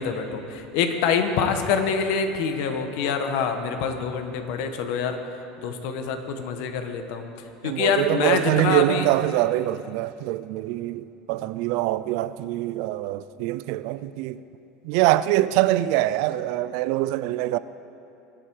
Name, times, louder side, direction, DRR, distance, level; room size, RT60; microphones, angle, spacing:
voice 1, 0.0-5.2 5.6-7.2 7.6-9.1, left 6 dB, 65° left, 1.4 m, -25 dB
voice 2, 7.6-14.4 14.8-17.6, right 16 dB, 65° right, 0.5 m, -24 dB
24.0 x 8.8 x 4.8 m
supercardioid pair, 145°, 0 cm